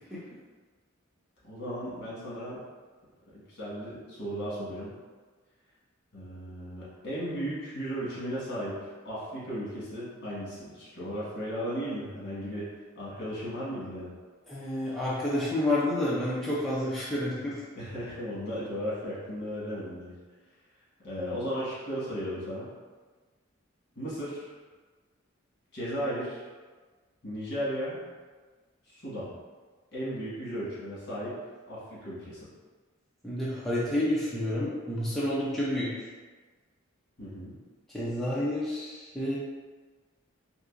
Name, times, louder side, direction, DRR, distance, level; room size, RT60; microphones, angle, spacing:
voice 1, 1.4-2.6 3.3-4.9 6.1-12.7 12.9-14.1 17.7-20.1 21.0-22.7 23.9-24.5 25.7-26.5 27.2-28.0 28.8-29.3 29.9-31.4 31.7-32.5 37.2-37.5, equal, 55° left, -8 dB, 1.4 m, -35 dB
voice 2, 14.5-17.6 33.2-36.1 37.9-39.4, left 1 dB, ahead, -10 dB, 0.5 m, -29 dB
3.7 x 2.8 x 2.4 m, 1.4 s
head